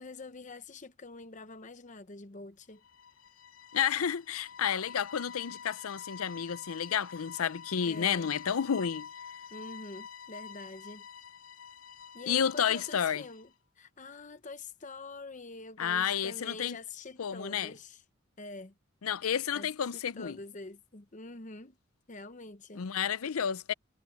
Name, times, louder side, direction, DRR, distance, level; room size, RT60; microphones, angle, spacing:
voice 1, 0.0-2.8 7.8-8.3 9.5-11.1 12.1-13.5 13.8-18.0 18.4-18.7 19.5-21.8 22.1-22.9, left 3 dB, 35° left, 0.9 m, -46 dB
sound 1, 2.8-13.5, left 7 dB, 70° left, 1.1 m, -48 dB
voice 2, 3.7-9.1 12.3-13.2 15.8-16.8 17.2-17.7 19.0-20.4 22.8-23.7, left 8 dB, 90° left, 0.6 m, -31 dB
head